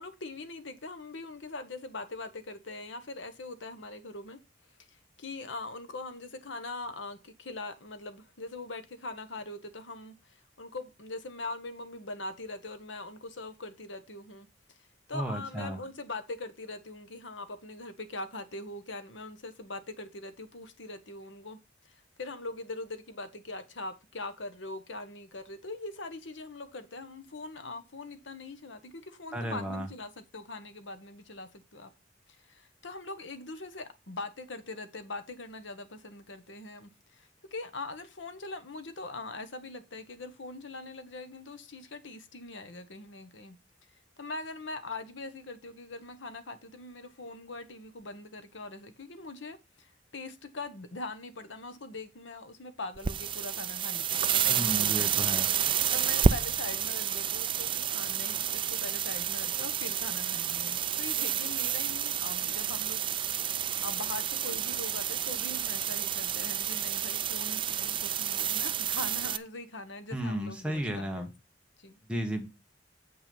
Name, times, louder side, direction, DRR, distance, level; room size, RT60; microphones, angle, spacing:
voice 1, 0.0-4.4 4.9-14.5 15.1-21.6 21.8-31.9 32.4-43.6 44.2-55.1 55.9-71.3 71.8-72.0, left 2 dB, 80° left, 1.3 m, -42 dB
voice 2, 15.1-15.8 29.3-29.9 54.5-55.5 70.1-71.3 72.1-72.5, right 1 dB, 5° right, 1.5 m, -33 dB
sound 1, 53.0-69.4, right 8 dB, 25° right, 0.4 m, -30 dB
8.3 x 5.7 x 5.3 m
head